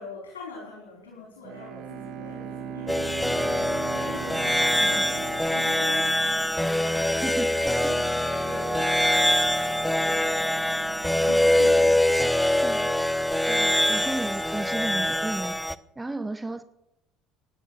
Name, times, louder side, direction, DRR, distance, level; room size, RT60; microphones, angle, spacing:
voice 1, 0.0-6.4 6.8-13.0 13.5-14.0, left 4 dB, 85° left, -2 dB, 4.6 m, -43 dB
Bowed string instrument, 1.4-6.6, right 7 dB, 65° right, 1.8 m, -39 dB
sound 1, 2.0-12.0, right 9 dB, 45° right, 2.4 m, -46 dB
sound 2, 2.9-15.8, left 1 dB, 5° left, 0.8 m, -24 dB
voice 2, 13.4-15.6 16.0-16.6, right 2 dB, 15° right, 12 dB, 1.1 m, -33 dB
16.5 x 10.5 x 6.8 m, 0.88 s
hypercardioid pair, 65°, 0 cm